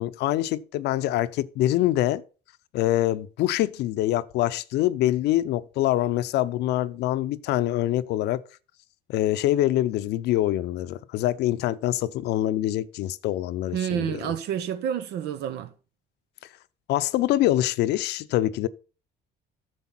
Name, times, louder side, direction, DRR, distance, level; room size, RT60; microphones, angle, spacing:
voice 1, 0.0-2.2 2.7-8.4 9.1-14.2 16.9-18.7, left 14 dB, 80° left, 0.7 m, -25 dB
voice 2, 13.7-15.7, right 9 dB, 80° right, 1.0 m, -29 dB
9.6 x 6.9 x 5.8 m
cardioid pair, 110°, 17 cm